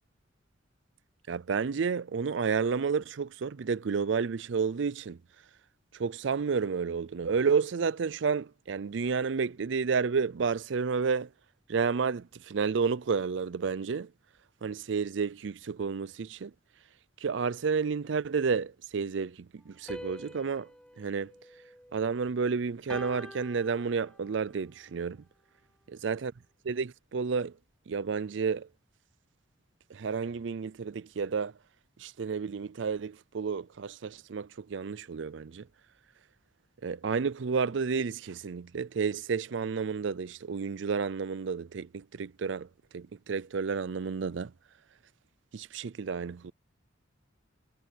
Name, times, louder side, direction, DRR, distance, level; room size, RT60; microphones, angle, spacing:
voice 1, 1.3-5.2 5.9-11.3 11.7-14.1 14.6-16.5 17.2-20.7 21.0-21.3 21.9-25.2 26.0-26.3 26.6-27.5 27.9-28.7 29.9-31.5 32.0-35.7 36.8-42.7 42.9-44.5 45.5-46.5, right 5 dB, 65° right, 0.5 m, -31 dB
sound 1, 19.9-22.3 22.9-24.4, equal, 5° left, 2.2 m, -46 dB
head